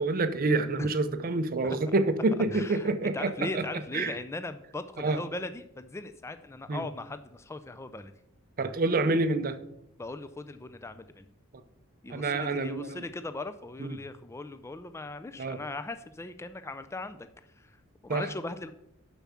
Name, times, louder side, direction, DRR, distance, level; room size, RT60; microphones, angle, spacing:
voice 1, 0.0-3.6 3.9-4.1 5.0-5.2 6.7-6.8 8.6-9.6 12.1-13.0 13.8-13.9 15.4-15.6 18.1-18.2, right 3 dB, 45° right, 10 dB, 0.6 m, -27 dB
voice 2, 2.5-8.1 10.0-11.3 12.0-18.7, left 2 dB, 15° left, 10 dB, 0.3 m, -39 dB
7.0 x 6.1 x 5.7 m, 0.79 s
head